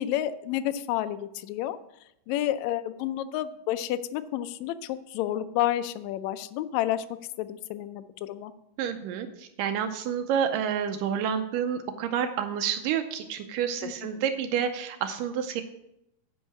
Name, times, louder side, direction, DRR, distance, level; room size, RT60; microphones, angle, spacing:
voice 1, 0.0-1.8 2.3-7.0 7.4-8.5 13.8-14.2, left 12 dB, 90° left, 10 dB, 1.5 m, -30 dB
voice 2, 8.8-15.6, right 8 dB, 85° right, 7 dB, 2.2 m, -29 dB
10.0 x 5.5 x 7.3 m, 0.82 s
omnidirectional pair, 3.8 m